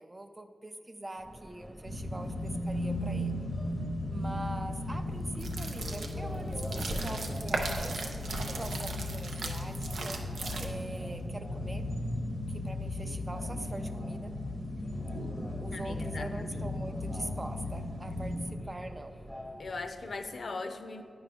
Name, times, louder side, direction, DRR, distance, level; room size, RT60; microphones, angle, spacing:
voice 1, 0.0-3.3 4.1-8.1 8.5-10.2 10.6-11.9 12.5-14.4 15.6-19.1, right 1 dB, 30° right, 7 dB, 0.5 m, -43 dB
Subway metro underground, 1.2-20.4, equal, 10° left, 0.7 m, -48 dB
sound 1, 1.8-18.5, left 1 dB, 75° right, 1.1 m, -36 dB
sound 2, 5.3-11.0, right 3 dB, 90° right, 0.5 m, -37 dB
voice 2, 15.7-16.8 19.6-21.0, left 3 dB, 70° left, 7 dB, 0.5 m, -39 dB
9.4 x 4.7 x 3.4 m, 2.3 s
cardioid pair, 50°, 0 cm